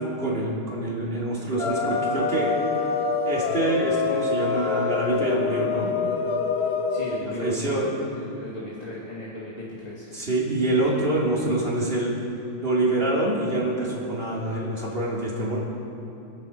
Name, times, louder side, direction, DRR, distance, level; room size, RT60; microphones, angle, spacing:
voice 1, 0.0-2.6 3.2-5.9 7.2-7.9 10.1-12.2 12.6-15.6, right 1 dB, 25° right, -5 dB, 3.2 m, -26 dB
sound 1, 1.6-7.2, left 5 dB, 65° left, 0.6 m, -26 dB
voice 2, 6.6-10.1, left 1 dB, 20° left, -7 dB, 2.2 m, -36 dB
27.0 x 11.0 x 4.6 m, 2.9 s
omnidirectional pair, 2.4 m